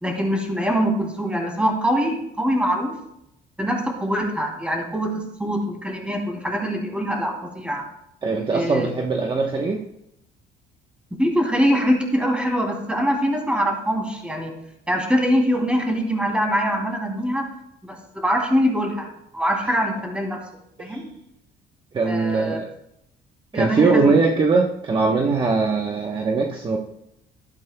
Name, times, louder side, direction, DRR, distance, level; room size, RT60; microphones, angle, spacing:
voice 1, 0.0-2.9 3.6-7.8 8.5-8.9 11.2-14.5 14.9-17.5 17.8-19.1 19.3-20.4 20.8-21.1 22.0-22.6 23.5-24.2, equal, 5° right, 1 dB, 2.9 m, -23 dB
voice 2, 8.2-9.8 20.9-21.0 21.9-22.7 23.5-26.8, right 4 dB, 30° right, 1 dB, 1.1 m, -21 dB
12.5 x 11.5 x 2.3 m, 0.80 s
cardioid pair, 110°, 17 cm